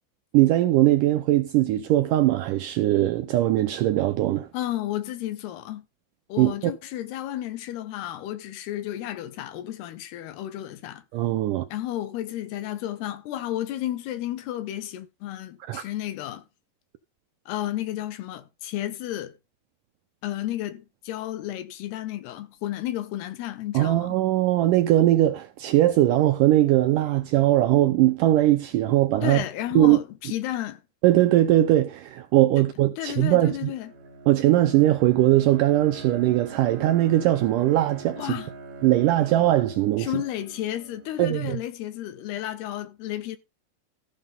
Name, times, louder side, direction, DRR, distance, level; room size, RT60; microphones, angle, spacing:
voice 1, 0.3-4.5 6.4-6.7 11.1-11.7 15.6-15.8 23.7-29.5 29.7-30.0 31.0-33.7 34.3-38.3 38.8-40.1 41.2-41.6, right 14 dB, 85° right, 1.9 m, -20 dB
voice 2, 4.5-5.8 6.3-11.0 11.7-16.4 17.5-19.3 20.2-24.2 29.2-30.8 32.6-32.7 33.0-33.9 38.2-38.5 40.0-43.4, left 13 dB, 90° left, 3.2 m, -32 dB
Bowed string instrument, 33.5-41.3, right 4 dB, 55° right, 3.1 m, -43 dB
14.5 x 5.6 x 5.3 m
omnidirectional pair, 4.5 m